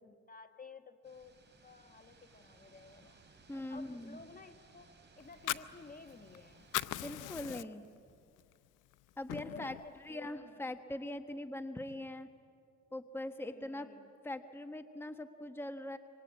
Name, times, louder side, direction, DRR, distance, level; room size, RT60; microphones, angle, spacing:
voice 1, 0.0-4.9 5.2-7.8 9.3-10.7 13.4-14.1, left 4 dB, 30° left, 8 dB, 1.4 m, -55 dB
sound 1, 1.0-7.3, right 3 dB, 35° right, 4.9 m, -62 dB
voice 2, 3.5-4.2 7.0-7.9 9.2-9.7 10.0-12.3 12.9-13.9 14.2-16.0, left 1 dB, 5° left, 7 dB, 1.3 m, -42 dB
Fire, 5.2-6.4 6.6-8.0 8.4-8.5 8.9-9.9, left 15 dB, 85° left, 0.7 m, -39 dB
26.5 x 24.5 x 8.4 m, 2.4 s
cardioid pair, 90°, 30 cm